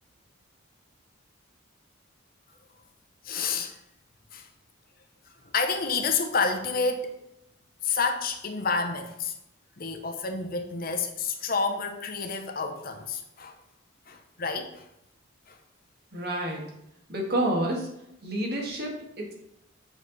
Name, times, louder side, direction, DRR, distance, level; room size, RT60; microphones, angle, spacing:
voice 1, 3.2-3.8 4.3-4.5 5.4-7.2 7.8-9.3 9.8-13.6 14.1-14.9 15.5-15.6, left 4 dB, 45° left, 0.8 m, -29 dB
voice 2, 16.1-16.7 17.1-17.9 18.2-19.3, right 1 dB, 50° right, 1.8 m, -29 dB
8.5 x 5.0 x 4.0 m
head